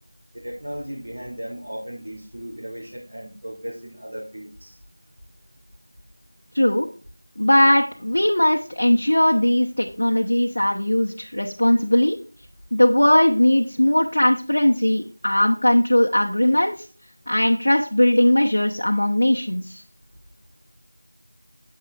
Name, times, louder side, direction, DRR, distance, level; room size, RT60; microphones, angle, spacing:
voice 1, 0.3-4.8, equal, 60° right, -4 dB, 2.8 m, -36 dB
voice 2, 6.5-6.9 7.4-12.2 12.7-16.9 17.3-19.8, left 1 dB, 60° left, 0 dB, 0.9 m, -19 dB
9.4 x 7.5 x 2.4 m, 0.40 s
figure-of-eight pair, 175°, 0 cm